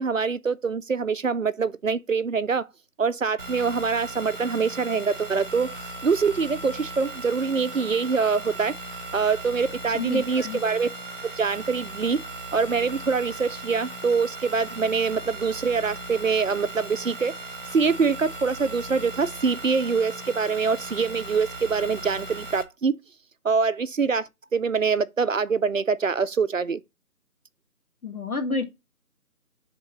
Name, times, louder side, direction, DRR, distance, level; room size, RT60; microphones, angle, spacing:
voice 1, 0.0-2.7 3.0-8.8 9.1-10.9 11.2-12.2 12.5-17.4 17.7-22.9 23.4-26.8, right 5 dB, 60° right, 0.5 m, -24 dB
sound 1, 3.4-22.6, right 2 dB, 35° right, 1.2 m, -38 dB
voice 2, 9.9-10.6 28.0-28.6, left 4 dB, 70° left, 2.0 m, -29 dB
10.0 x 3.7 x 3.0 m
figure-of-eight pair, 180°, 45 cm